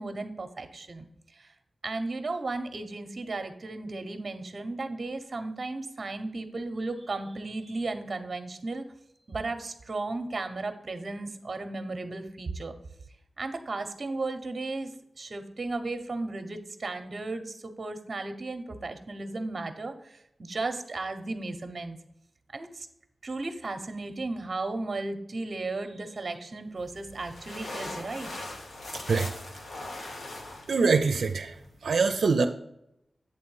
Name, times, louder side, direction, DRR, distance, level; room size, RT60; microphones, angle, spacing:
voice 1, 0.0-1.5 1.8-8.8 9.3-12.7 13.4-14.9 15.2-22.0 22.5-22.9 23.2-28.3, right 3 dB, 45° right, 8 dB, 0.8 m, -35 dB
sound 1, 26.8-31.8, left 2 dB, 80° left, 1.2 m, -41 dB
voice 2, 28.9-29.3 30.7-32.5, right 4 dB, 85° right, 6 dB, 0.5 m, -24 dB
8.2 x 3.8 x 5.4 m, 0.81 s
wide cardioid pair, 125°, 0 cm